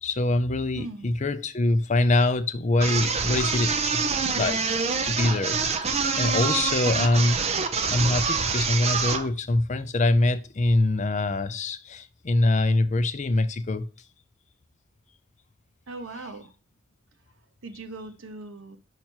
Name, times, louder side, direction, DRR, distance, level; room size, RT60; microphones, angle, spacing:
voice 1, 0.0-4.0 4.4-4.6 5.0-5.6 6.2-7.4 7.9-13.9, left 2 dB, 35° left, 0.5 m, -24 dB
voice 2, 0.8-1.1 15.9-16.5 17.6-18.8, right 2 dB, 70° right, 0.9 m, -39 dB
sound 1, 2.8-9.3, right 5 dB, 30° right, 0.6 m, -26 dB
5.8 x 4.5 x 4.4 m
head